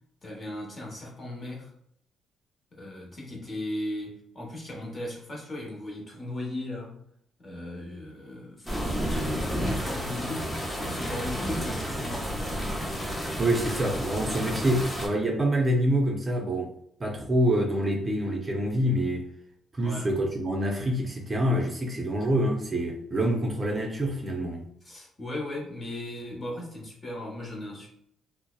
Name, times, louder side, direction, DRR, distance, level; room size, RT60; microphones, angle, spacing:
voice 1, 0.2-1.7 2.7-7.0 7.4-13.0 19.8-20.1 24.8-27.9, left 1 dB, 35° left, 1.0 m, -37 dB
sound 1, 8.7-15.1, equal, 10° left, 0.7 m, -31 dB
voice 2, 13.4-16.7 17.0-19.3 19.7-24.6, right 1 dB, 30° right, 0.5 m, -26 dB
2.6 x 2.0 x 2.3 m
cardioid pair, 90°, 0 cm